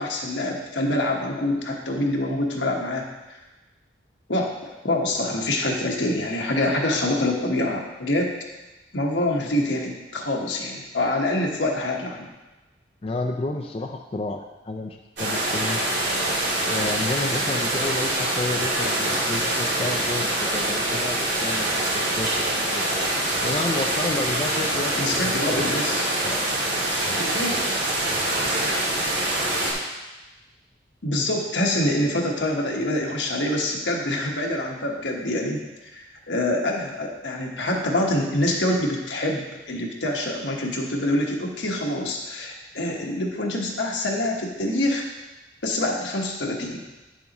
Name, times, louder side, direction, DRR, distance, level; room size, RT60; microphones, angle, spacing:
voice 1, 0.0-3.4 4.3-8.3 8.9-12.3 24.9-26.0 27.1-27.6 31.0-35.6 35.9-45.1 45.6-46.8, left 1 dB, 80° left, 0 dB, 1.3 m, -25 dB
voice 2, 13.0-15.8 16.7-22.9 23.4-25.9 26.2-26.5 27.0-27.2, left 2 dB, 30° left, 1 dB, 0.4 m, -31 dB
sound 1, 15.2-29.7, right 1 dB, 75° right, 2.5 m, -25 dB
10.0 x 7.1 x 3.0 m, 1.1 s
head